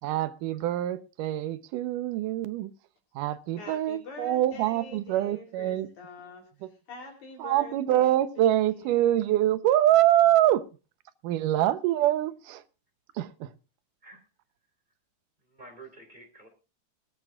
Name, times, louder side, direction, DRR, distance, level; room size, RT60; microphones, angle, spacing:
voice 1, 0.0-2.7 3.1-5.9 6.6-6.7 7.4-10.7 11.2-12.6 13.1-13.5, right 13 dB, 85° right, 2.5 m, -25 dB
voice 2, 3.6-6.5 6.9-9.1, left 3 dB, 65° left, 4.6 m, -45 dB
voice 3, 15.4-16.5, right 2 dB, 15° right, 3.3 m, -49 dB
21.0 x 13.5 x 2.4 m
omnidirectional pair, 3.7 m